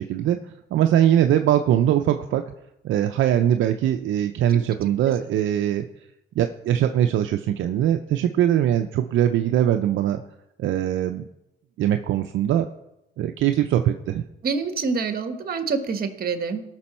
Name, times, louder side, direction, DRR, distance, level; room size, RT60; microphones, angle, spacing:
voice 1, 0.0-2.4 2.8-5.8 6.4-10.2 10.6-11.2 11.8-12.7 13.2-14.2, right 11 dB, 75° right, 7 dB, 0.6 m, -21 dB
voice 2, 14.4-16.6, right 5 dB, 50° right, 8 dB, 1.4 m, -26 dB
17.5 x 6.1 x 4.3 m, 0.87 s
cardioid pair, 90°, 20 cm